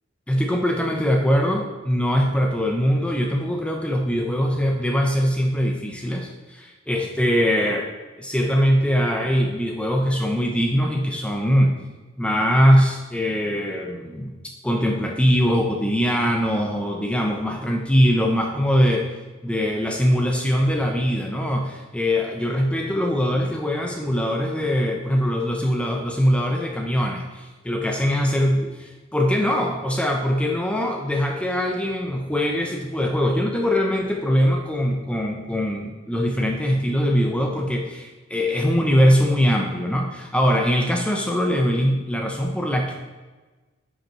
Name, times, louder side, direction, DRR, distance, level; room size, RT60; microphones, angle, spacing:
voice 1, 0.3-7.9 8.2-11.8 12.2-14.4 14.6-19.1 19.4-28.7 29.1-43.0, equal, 5° left, 1 dB, 0.5 m, -22 dB
9.8 x 5.3 x 3.0 m, 1.3 s
head